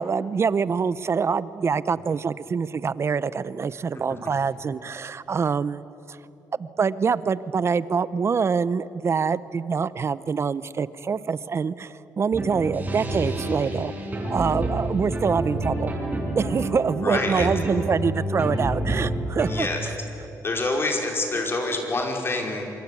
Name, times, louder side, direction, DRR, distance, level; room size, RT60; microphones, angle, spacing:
voice 1, 0.0-5.8 6.1-6.2 6.6-13.9 14.3-15.9 16.4-19.7, right 5 dB, 40° right, 17 dB, 0.8 m, -25 dB
sound 1, 12.3-19.6, right 1 dB, 25° right, 7.8 m, -28 dB
voice 2, 17.0-17.5 19.5-19.8 20.4-22.6, left 2 dB, 35° left, 1 dB, 5.3 m, -26 dB
26.5 x 22.5 x 8.5 m, 3.0 s
cardioid pair, 85°, 7 cm